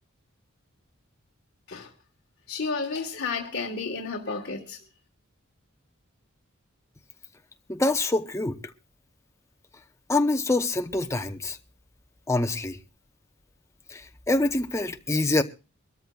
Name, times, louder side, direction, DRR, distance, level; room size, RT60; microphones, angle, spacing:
voice 1, 2.5-4.8, left 4 dB, 55° left, 1.4 m, -31 dB
voice 2, 7.7-8.5 10.1-11.6 12.3-12.8 13.9-14.0 14.3-15.4, left 2 dB, 15° left, 0.7 m, -25 dB
24.5 x 13.5 x 2.3 m
head